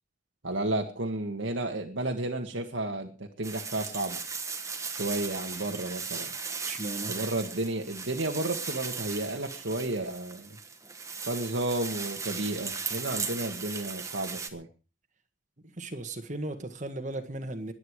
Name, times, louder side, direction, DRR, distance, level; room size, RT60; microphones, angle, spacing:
voice 1, 0.4-4.2 4.9-6.3 7.1-10.6 11.2-14.7, right 2 dB, 75° right, 1.9 m, -32 dB
sound 1, 3.4-14.5, right 5 dB, 15° right, 1.4 m, -37 dB
voice 2, 6.7-7.1 15.8-17.7, right 2 dB, 40° right, 1.7 m, -36 dB
22.0 x 9.5 x 4.9 m
head